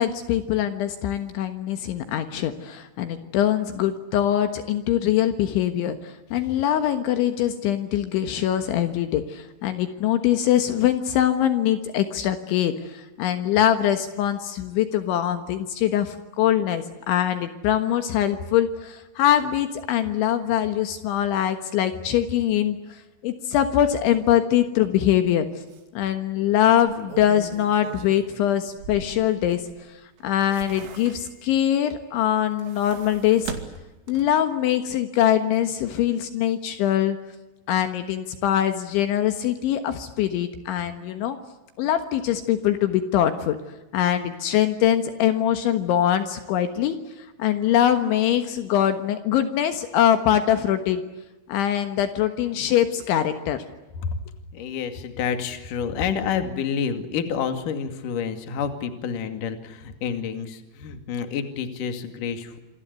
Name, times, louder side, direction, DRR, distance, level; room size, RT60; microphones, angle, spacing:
voice 1, 0.0-25.5 25.9-29.6 30.2-33.6 34.1-37.2 37.7-41.4 41.8-43.6 43.9-51.0 51.5-53.6, left 11 dB, 75° left, 8 dB, 3.6 m, -23 dB
sound 1, 25.2-25.3 25.7-25.8 26.7-29.8 30.2-31.5 32.4-34.5 34.8-34.9, right 6 dB, 75° right, 5.0 m, -40 dB
voice 2, 54.5-62.6, left 7 dB, 50° left, 7 dB, 3.3 m, -29 dB
27.5 x 25.5 x 8.3 m, 1.0 s
omnidirectional pair, 5.7 m